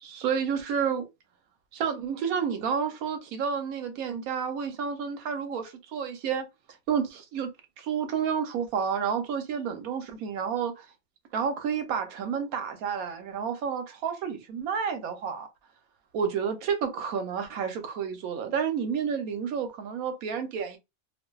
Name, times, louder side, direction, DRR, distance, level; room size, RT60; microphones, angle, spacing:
voice 1, 0.0-1.0 1.7-6.5 6.9-7.5 7.8-10.9 11.3-15.5 16.1-20.8, right 7 dB, 90° right, 1.1 m, -30 dB
2.6 x 2.3 x 2.2 m
omnidirectional pair, 1.5 m